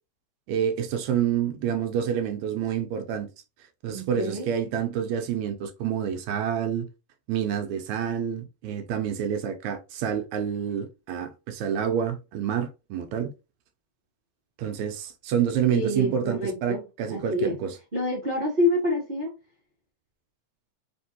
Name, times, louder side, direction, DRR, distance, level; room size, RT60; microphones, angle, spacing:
voice 1, 0.5-3.3 3.8-6.9 7.3-13.3 14.6-17.8, right 8 dB, 80° right, 1.8 m, -28 dB
voice 2, 3.9-4.5 15.7-16.8 17.1-17.6 17.9-19.3, left 1 dB, 50° right, 0.5 m, -27 dB
4.2 x 3.6 x 2.8 m
omnidirectional pair, 3.5 m